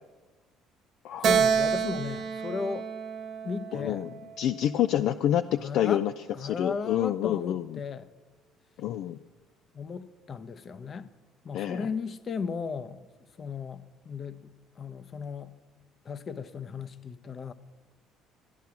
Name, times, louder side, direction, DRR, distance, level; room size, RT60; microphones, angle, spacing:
voice 1, 1.2-2.9 3.4-4.0 5.6-6.0 6.3-8.1 9.7-11.1 11.4-13.0 13.4-15.5 16.0-17.5, left 5 dB, 40° left, 0.8 m, -36 dB
Keyboard (musical), 1.2-4.7, right 6 dB, 55° right, 1.0 m, -28 dB
voice 2, 3.7-4.1 4.4-6.1 6.4-7.8 8.8-9.2 11.5-11.9, left 11 dB, 60° left, 0.3 m, -27 dB
13.0 x 10.5 x 5.9 m
hypercardioid pair, 55°, 0 cm